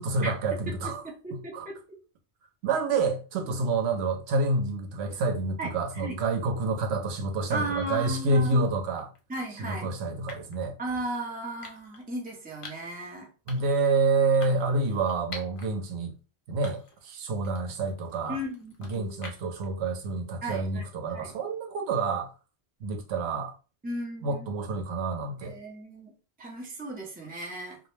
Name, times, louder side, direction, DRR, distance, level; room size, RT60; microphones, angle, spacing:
voice 1, 0.0-1.0 1.5-1.7 2.6-9.1 9.6-10.7 13.5-16.1 16.5-18.4 18.8-22.3 22.8-23.5 24.2-25.6, right 3 dB, 85° right, 0.8 m, -28 dB
voice 2, 0.7-1.8 5.6-5.7 6.0-6.2 7.5-8.7 9.3-9.9 10.8-13.3 18.3-19.5 20.4-20.9 21.1-21.3 23.8-24.5 25.4-26.1 26.4-27.8, right 1 dB, 10° right, 0.4 m, -36 dB
sound 1, 9.0-9.2 10.3-10.6 11.6-12.0 12.6-13.0 13.5-13.8 14.4-15.7 16.1-16.2 16.6-17.1 17.4-19.6, left 3 dB, 45° left, 0.5 m, -46 dB
2.2 x 2.0 x 3.0 m
omnidirectional pair, 1.1 m